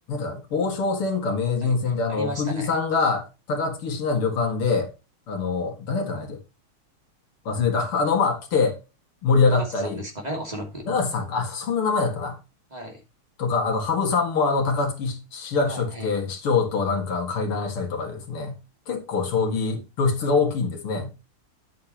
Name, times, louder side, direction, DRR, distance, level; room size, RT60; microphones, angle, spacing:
voice 1, 0.1-4.9 5.3-6.4 7.4-8.8 9.2-10.0 10.9-12.4 13.4-18.6 18.9-21.1, left 4 dB, 90° left, 3.0 m, -24 dB
voice 2, 2.1-2.7 9.5-10.8 12.7-13.0 15.7-16.1, equal, 20° right, 2.7 m, -34 dB
10.0 x 8.1 x 3.0 m
omnidirectional pair, 2.3 m